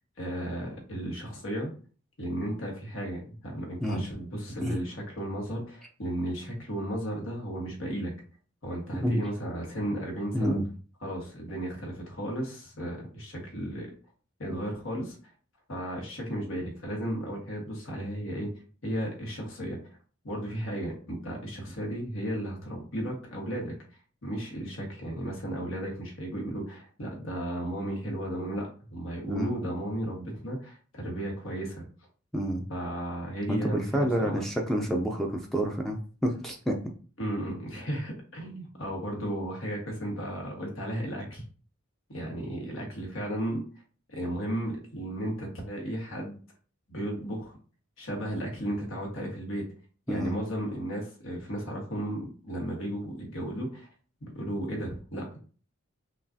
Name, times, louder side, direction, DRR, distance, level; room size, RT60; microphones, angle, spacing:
voice 1, 0.2-1.7 2.2-8.1 8.6-10.6 11.0-13.9 14.4-15.2 15.7-18.5 18.8-19.8 20.2-23.7 24.2-31.8 32.7-34.4 37.2-41.4 42.1-43.6 44.1-46.4 46.9-47.5 48.0-49.6 50.1-53.9 54.2-55.4, right 1 dB, 80° left, 0 dB, 1.4 m, -34 dB
voice 2, 10.3-10.6 29.3-29.5 32.3-32.6 33.5-36.8 50.1-50.4, equal, ahead, 1 dB, 0.4 m, -28 dB
5.5 x 2.3 x 2.6 m, 0.40 s
head